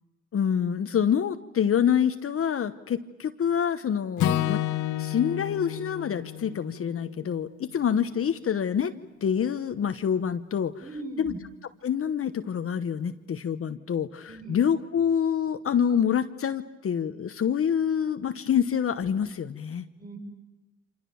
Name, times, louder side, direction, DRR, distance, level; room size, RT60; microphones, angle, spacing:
voice 1, 0.3-4.6 5.0-8.9 9.2-10.7 11.2-11.3 11.8-19.9, left 8 dB, 45° left, 9 dB, 1.1 m, -26 dB
Acoustic guitar / Strum, 4.2-8.5, left 12 dB, 75° left, 1.3 m, -31 dB
voice 2, 10.8-11.4 14.3-14.6 20.0-20.2, right 2 dB, 30° right, 4 dB, 7.3 m, -39 dB
28.0 x 26.5 x 7.1 m, 1.0 s
cardioid pair, 90°, 30 cm